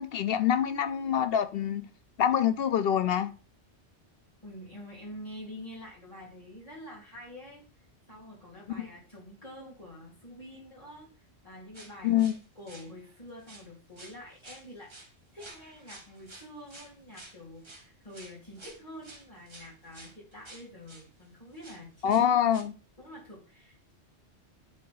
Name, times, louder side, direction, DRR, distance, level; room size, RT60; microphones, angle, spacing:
voice 1, 0.0-1.8 2.2-3.3 12.0-12.3 22.0-22.7, left 9 dB, 65° left, 0.7 m, -25 dB
voice 2, 4.4-7.6 8.1-12.2 12.5-14.9 15.3-22.2 23.0-23.9, left 1 dB, 30° left, 2.5 m, -47 dB
sound 1, 11.7-13.2 13.4-13.7 14.0-21.1 21.5-22.6, right 2 dB, 25° right, 1.1 m, -51 dB
8.4 x 3.8 x 3.9 m
omnidirectional pair, 1.2 m